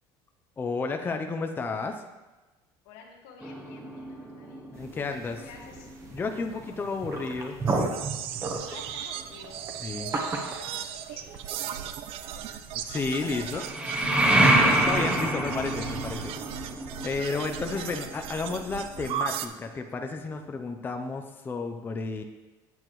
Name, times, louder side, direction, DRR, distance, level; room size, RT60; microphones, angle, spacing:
voice 1, 0.6-2.0 4.7-5.4 6.1-7.9 9.8-10.1 12.7-13.6 14.7-16.4 16.8-22.2, left 4 dB, 20° left, 5 dB, 0.5 m, -32 dB
voice 2, 2.8-4.7 5.2-5.9 6.5-6.7 8.6-12.4 13.2-13.6 13.9-14.3 17.7-18.0, left 5 dB, 85° left, 0 dB, 1.7 m, -49 dB
sound 1, 3.4-6.1 13.5-19.2, right 1 dB, 10° right, 0.8 m, -27 dB
sound 2, 4.7-13.3, right 3 dB, 25° right, 1.1 m, -36 dB
sound 3, 7.7-19.5, right 10 dB, 55° right, 0.5 m, -37 dB
8.9 x 7.9 x 3.1 m, 1.2 s
cardioid pair, 135°, 11 cm